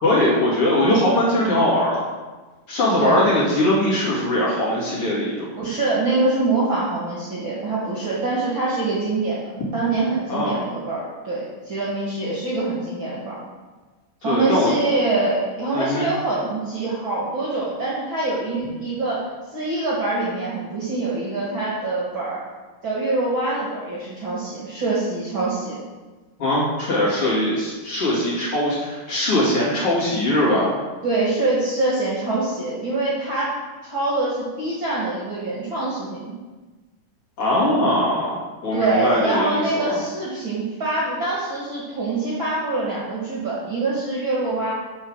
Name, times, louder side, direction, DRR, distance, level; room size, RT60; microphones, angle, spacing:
voice 1, 0.0-2.0 2.7-5.5 10.3-10.6 14.2-14.7 15.7-16.1 26.4-30.7 37.4-40.0, left 1 dB, 45° left, -6 dB, 2.9 m, -21 dB
voice 2, 5.6-9.4 9.7-13.4 14.2-22.4 22.8-25.8 31.0-33.5 33.8-36.3 38.7-44.7, right 2 dB, 45° right, -6 dB, 2.0 m, -24 dB
8.1 x 5.9 x 6.2 m, 1.2 s
omnidirectional pair, 4.0 m